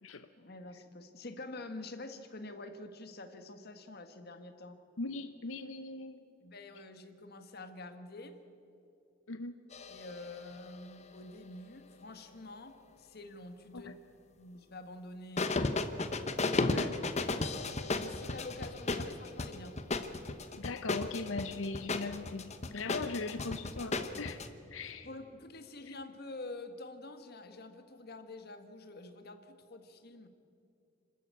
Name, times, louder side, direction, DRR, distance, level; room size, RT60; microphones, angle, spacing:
voice 1, 0.4-4.8 6.4-8.4 9.9-13.9 14.3-15.9 18.0-19.8 24.8-30.3, left 2 dB, 55° left, 7 dB, 1.6 m, -47 dB
voice 2, 5.0-6.2 9.3-9.5 13.7-14.0 16.6-16.9 20.5-24.4 24.7-25.1, left 3 dB, 90° left, 10 dB, 0.7 m, -39 dB
sound 1, 9.7-11.2 15.4-24.5, left 3 dB, 35° left, 1.0 m, -35 dB
27.0 x 13.0 x 8.4 m, 2.6 s
head